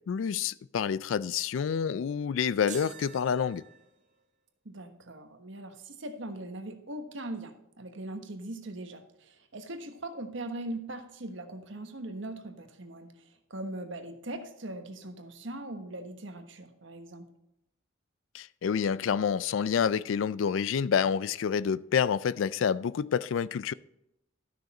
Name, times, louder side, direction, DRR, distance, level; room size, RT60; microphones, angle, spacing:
voice 1, 0.1-3.6 18.3-23.7, left 7 dB, 70° left, 0.3 m, -28 dB
sound 1, 2.7-4.2, right 7 dB, 40° right, 1.4 m, -46 dB
voice 2, 4.6-13.1 13.5-17.3, right 1 dB, 65° right, 1.3 m, -40 dB
12.5 x 6.5 x 4.2 m
head